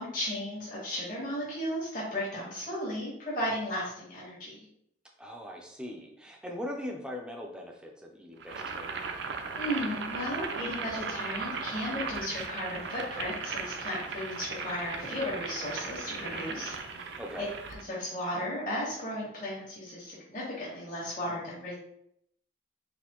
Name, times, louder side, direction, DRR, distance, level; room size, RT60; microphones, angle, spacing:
voice 1, 0.0-4.6 9.6-16.7 17.0-17.4 17.9-21.7, left 1 dB, 45° left, -6 dB, 1.3 m, -35 dB
voice 2, 5.2-9.1 17.2-17.5, left 1 dB, 5° right, 1 dB, 0.4 m, -40 dB
Boiling, 8.4-17.8, right 5 dB, 70° right, 0.4 m, -37 dB
4.1 x 2.6 x 2.9 m, 0.72 s
head